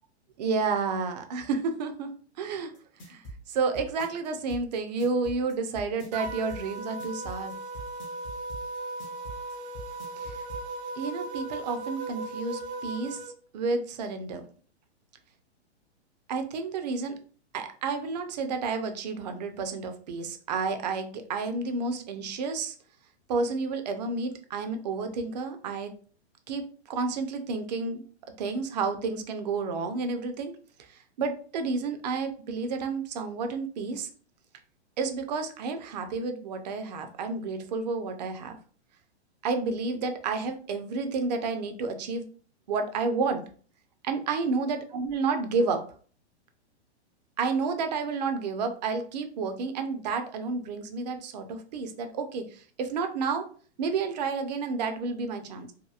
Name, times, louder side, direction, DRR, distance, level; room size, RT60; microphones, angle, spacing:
voice 1, 0.4-2.1 2.4-2.7 3.1-3.2 3.5-7.6 10.2-10.4 11.0-13.2 13.5-14.4 16.3-17.1 17.5-22.7 23.3-25.9 26.5-28.0 28.4-30.5 31.2-34.1 35.0-38.6 39.4-42.3 42.7-43.4 44.0-45.8 47.4-53.5 53.8-55.7, right 4 dB, 40° right, 7 dB, 0.4 m, -30 dB
sound 1, 2.7-10.6, right 1 dB, 15° left, 0.4 m, -43 dB
sound 2, 6.1-13.3, right 2 dB, 75° right, 0.8 m, -37 dB
2.8 x 2.5 x 2.3 m, 0.43 s
hypercardioid pair, 150°, 34 cm